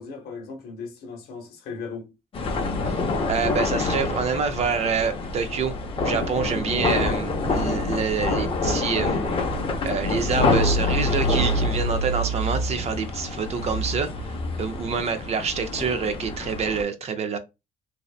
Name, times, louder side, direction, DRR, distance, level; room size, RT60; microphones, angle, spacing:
voice 1, 0.0-2.1 6.5-6.9 14.7-15.0, left 4 dB, 65° left, 0.8 m, -38 dB
sound 1, 2.3-16.8, left 2 dB, 35° left, 0.5 m, -26 dB
voice 2, 3.3-5.7 6.0-9.2 9.8-17.4, right 5 dB, 40° right, 0.5 m, -27 dB
2.7 x 2.1 x 2.4 m
cardioid pair, 110°, 17 cm